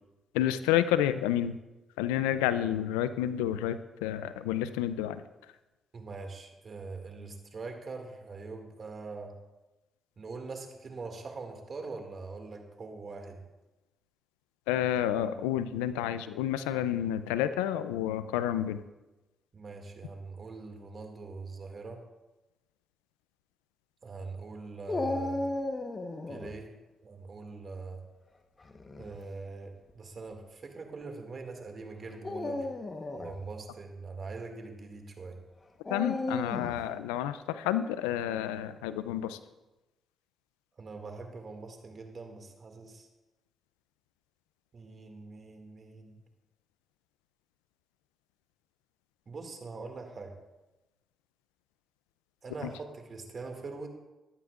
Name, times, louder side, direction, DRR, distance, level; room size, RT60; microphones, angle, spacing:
voice 1, 0.3-1.6 2.0-5.2 14.7-18.8 35.9-39.4 52.6-52.7, left 11 dB, 90° left, 13 dB, 0.4 m, -30 dB
voice 2, 5.9-9.3 10.2-13.4 19.5-22.0 24.0-25.5 26.3-26.8 27.0-28.0 29.0-32.7 33.1-35.4 40.8-43.1 44.7-46.2 49.3-50.3 52.4-53.9, right 3 dB, 50° right, 3 dB, 2.1 m, -43 dB
Dog, 24.9-26.5 28.6-29.1 29.9-30.0 32.1-33.4 35.8-36.8, left 2 dB, 35° left, 1.1 m, -34 dB
14.0 x 11.0 x 2.5 m, 1.1 s
hypercardioid pair, 50°, 0 cm